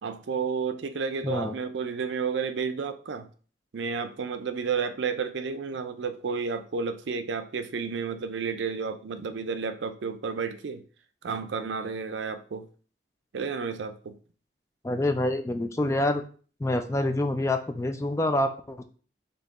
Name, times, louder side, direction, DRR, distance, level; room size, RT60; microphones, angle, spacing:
voice 1, 0.0-3.3 3.7-10.8 11.2-12.7 13.3-14.2, right 5 dB, 80° right, 10 dB, 0.4 m, -31 dB
voice 2, 1.2-1.5 14.8-16.2 16.6-18.8, left 1 dB, 15° left, 7 dB, 0.3 m, -26 dB
3.6 x 2.8 x 4.0 m, 0.41 s
head